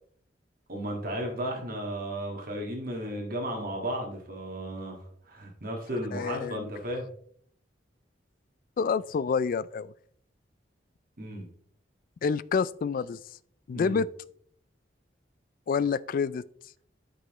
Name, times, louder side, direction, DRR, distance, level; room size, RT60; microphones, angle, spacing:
voice 1, 0.7-5.0 5.3-7.1 11.2-11.5 13.7-14.0, right 1 dB, 55° right, 1.7 m, -34 dB
voice 2, 6.1-6.7 8.8-9.9 12.2-13.2 13.7-14.1 15.7-16.4, left 5 dB, 50° left, 0.3 m, -28 dB
13.0 x 5.4 x 3.0 m
head